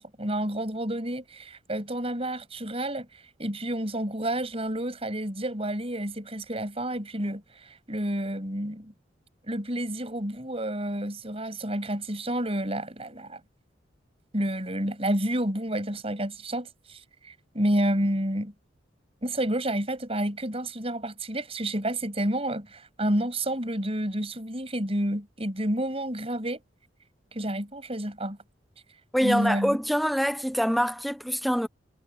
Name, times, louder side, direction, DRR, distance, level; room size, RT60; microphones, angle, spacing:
voice 1, 0.0-3.1 3.4-8.9 9.5-13.4 14.3-18.5 19.2-26.6 27.3-28.4 29.2-29.8, right 1 dB, 30° right, 7.9 m, -30 dB
voice 2, 29.1-31.7, equal, ahead, 1.1 m, -25 dB
head